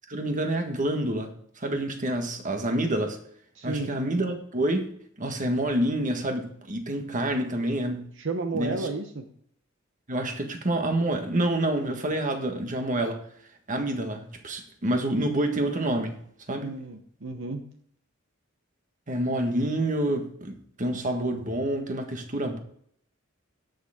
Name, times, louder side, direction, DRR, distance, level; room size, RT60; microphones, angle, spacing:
voice 1, 0.1-3.2 3.6-4.9 5.2-8.1 8.5-8.9 10.1-13.2 13.7-16.2 16.5-16.7 19.1-22.6, right 1 dB, 40° right, 1.5 m, -28 dB
voice 2, 3.5-3.9 8.2-9.3 16.6-17.6, right 3 dB, 65° right, 0.9 m, -32 dB
17.5 x 6.6 x 3.6 m
head